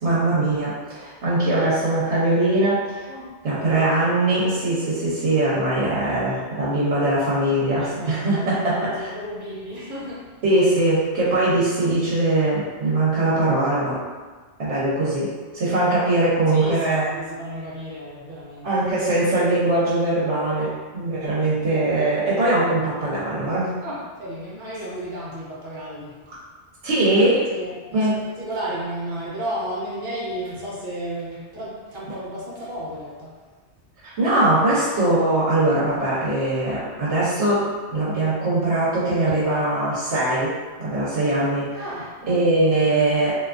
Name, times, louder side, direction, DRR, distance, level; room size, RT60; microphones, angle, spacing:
voice 1, 0.0-3.1 3.4-9.1 10.4-14.0 14.6-17.1 18.6-23.7 26.8-27.4 27.9-28.2 34.0-40.5 40.8-41.9 42.3-43.3, right 2 dB, 70° right, -8 dB, 1.1 m, -21 dB
voice 2, 3.1-3.8 7.7-8.5 8.7-10.3 16.5-18.7 23.8-26.2 27.5-33.4 41.8-42.4, right 1 dB, 50° right, -7 dB, 1.0 m, -33 dB
3.3 x 2.7 x 2.5 m, 1.4 s
omnidirectional pair, 1.2 m